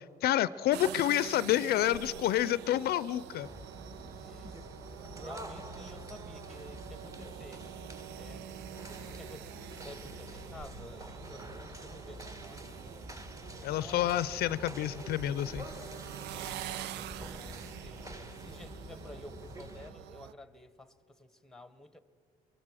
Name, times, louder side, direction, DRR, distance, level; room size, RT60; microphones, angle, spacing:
voice 1, 0.0-3.5 13.6-15.7, left 13 dB, 70° left, 0.5 m, -29 dB
sound 1, 0.7-20.3, right 13 dB, 85° right, 0.5 m, -46 dB
sound 2, 3.4-19.9, equal, 20° right, 1.5 m, -47 dB
voice 2, 4.0-4.7 5.2-7.7 8.2-8.6 9.0-12.9 13.5-14.2 16.3-22.0, left 1 dB, 5° left, 1.1 m, -52 dB
23.5 x 23.0 x 6.3 m
cardioid pair, 110°, 17 cm